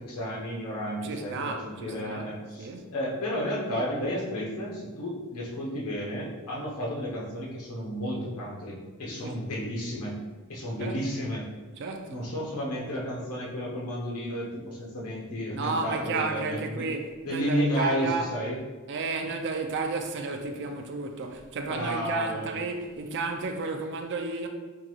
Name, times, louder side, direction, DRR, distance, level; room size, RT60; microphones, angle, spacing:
voice 1, 0.0-10.2 10.5-11.5 12.1-16.9 17.2-18.6 21.7-22.5, equal, 85° left, 0.9 m, -32 dB
voice 2, 1.0-2.3 2.6-2.9 9.2-9.3 10.8-11.0 11.8-12.2 15.5-18.3 18.9-24.5, right 3 dB, 50° right, 0.4 m, -32 dB
3.7 x 2.3 x 3.1 m
head